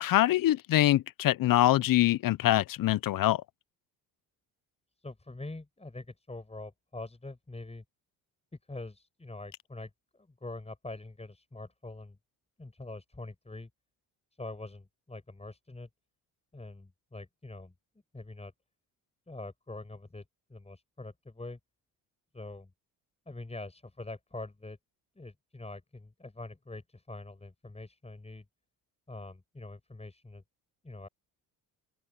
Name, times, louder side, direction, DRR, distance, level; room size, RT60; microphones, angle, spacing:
voice 1, 0.0-3.4, left 14 dB, 55° left, 0.8 m, -24 dB
voice 2, 5.0-7.8 8.7-12.2 12.6-13.7 14.4-15.9 16.5-17.7 18.1-18.5 19.3-20.2 20.5-21.6 22.3-22.7 23.3-24.8 25.1-28.4 29.1-30.4 30.8-31.1, left 2 dB, 15° left, 6.6 m, -44 dB
open air
supercardioid pair, 75°, 42 cm